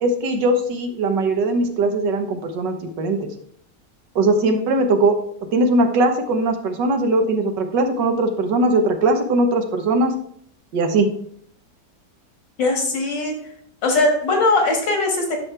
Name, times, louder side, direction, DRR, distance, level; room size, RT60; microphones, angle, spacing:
voice 1, 0.0-3.2 4.1-5.2 5.5-10.1 10.7-11.1, right 2 dB, 80° right, 6 dB, 1.7 m, -20 dB
voice 2, 12.6-13.3 13.8-15.4, left 2 dB, 90° left, 1 dB, 2.6 m, -20 dB
9.9 x 6.2 x 3.3 m, 0.65 s
omnidirectional pair, 1.9 m